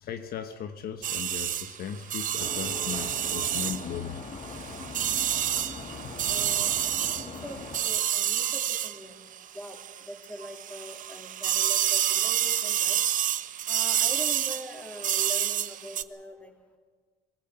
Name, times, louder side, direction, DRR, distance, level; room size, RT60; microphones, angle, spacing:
voice 1, 0.0-4.2, left 8 dB, 65° left, 8 dB, 1.1 m, -37 dB
sound 1, 1.0-10.1 10.4-16.0, right 11 dB, 50° right, 0.8 m, -29 dB
sound 2, 2.4-7.8, left 4 dB, 45° left, 2.3 m, -40 dB
voice 2, 6.3-6.7 7.2-9.2 9.5-13.0 13.7-16.5, equal, 10° left, 3 dB, 3.1 m, -42 dB
22.5 x 15.0 x 8.0 m, 1.4 s
cardioid pair, 110°, 17 cm